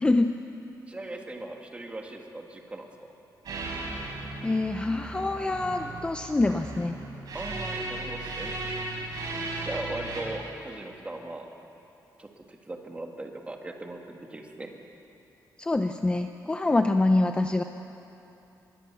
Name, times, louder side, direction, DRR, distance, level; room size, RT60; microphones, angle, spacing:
voice 1, 0.0-0.3 4.4-7.0 15.6-17.6, left 2 dB, 15° left, 7 dB, 0.6 m, -25 dB
voice 2, 0.9-2.9 7.3-8.5 9.6-11.5 12.2-14.7, right 2 dB, 15° right, 2 dB, 2.0 m, -39 dB
sound 1, 3.5-10.2, right 2 dB, 70° right, 6.2 m, -36 dB
24.5 x 22.0 x 7.0 m, 2.9 s
wide cardioid pair, 165°, 7 cm